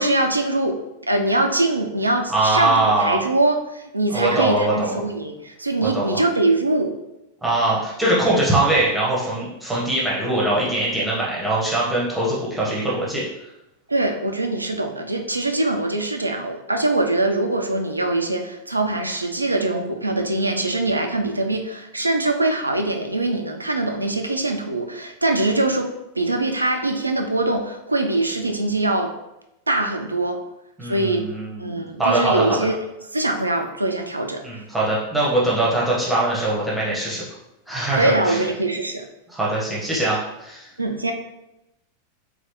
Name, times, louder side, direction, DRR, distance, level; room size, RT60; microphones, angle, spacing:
voice 1, 0.0-6.9 13.9-25.9 26.2-29.1 29.7-30.4 30.8-31.3 31.6-32.8 33.1-34.4 37.9-39.1 40.8-41.1, right 2 dB, 80° right, 4 dB, 0.4 m, -23 dB
voice 2, 2.3-3.2 4.1-5.0 5.9-6.2 7.4-13.2 30.8-32.6 34.4-37.2 37.7-38.4 39.3-40.7, right 2 dB, 5° right, -6 dB, 1.0 m, -22 dB
3.8 x 3.2 x 3.0 m, 0.91 s
figure-of-eight pair, 90°, 0 cm